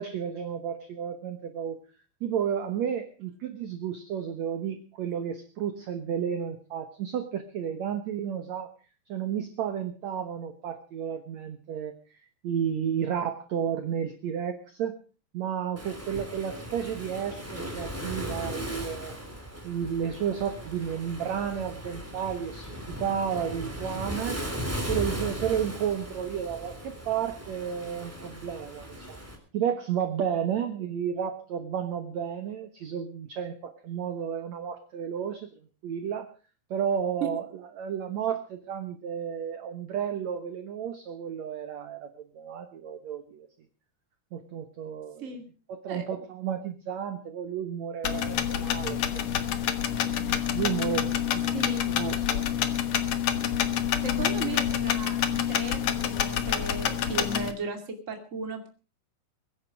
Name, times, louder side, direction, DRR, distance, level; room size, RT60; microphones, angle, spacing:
voice 1, 0.0-1.8 2.2-8.7 9.1-11.9 12.4-15.0 15.3-19.2 19.6-24.4 24.9-29.2 29.5-35.5 35.8-36.3 36.7-37.5 37.8-43.5 44.3-45.3 45.7-49.2 50.1-51.5 51.9-52.5, right 8 dB, 60° right, 7 dB, 2.0 m, -32 dB
Waves surf, 15.8-29.4, equal, 5° right, 3.0 m, -37 dB
sound 1, 48.0-57.5, left 9 dB, 60° left, 2.0 m, -27 dB
voice 2, 51.5-51.9 54.0-58.7, right 4 dB, 25° right, 5 dB, 2.1 m, -36 dB
22.5 x 10.5 x 5.1 m, 0.37 s
omnidirectional pair, 4.3 m